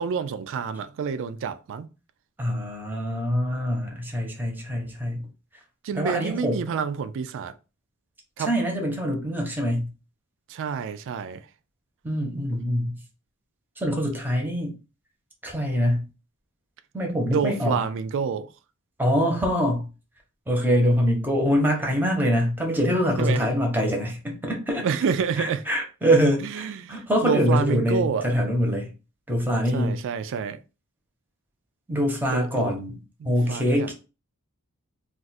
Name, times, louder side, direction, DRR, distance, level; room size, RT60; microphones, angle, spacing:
voice 1, 0.0-1.9 5.8-7.5 8.4-8.5 10.5-11.4 17.3-18.5 23.2-23.4 24.7-25.6 26.4-28.4 29.7-30.6 32.3-32.7 33.2-33.9, right 6 dB, 60° right, 0.3 m, -28 dB
voice 2, 2.4-5.3 6.0-6.6 8.4-9.9 12.0-13.0 13.8-14.7 15.4-16.1 16.9-17.8 19.0-19.9 20.5-24.8 25.3-28.9 29.3-30.0 31.9-33.0 33.2-33.9, equal, 10° right, 0.8 m, -24 dB
2.5 x 2.4 x 4.0 m
head